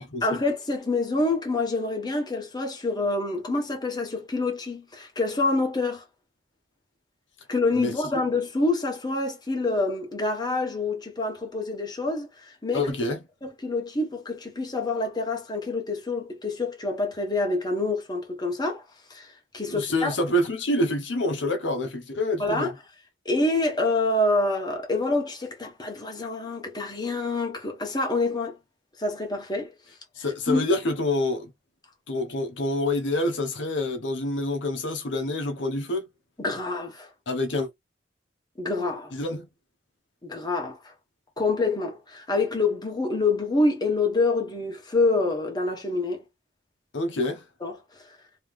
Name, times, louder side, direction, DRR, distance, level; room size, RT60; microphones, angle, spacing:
voice 1, 0.2-6.0 7.5-12.9 13.4-18.8 19.1-20.1 22.4-22.7 23.2-28.5 29.0-29.7 30.5-30.7 36.4-37.1 38.6-39.1 40.2-40.8 41.4-46.2 47.6-47.8, left 2 dB, 25° left, 1.3 m, -26 dB
voice 2, 12.7-13.2 19.7-22.7 30.2-31.5 32.1-36.0 37.3-37.7 39.1-39.5 46.9-47.4, left 1 dB, 75° left, 0.9 m, -27 dB
3.2 x 2.9 x 3.6 m
head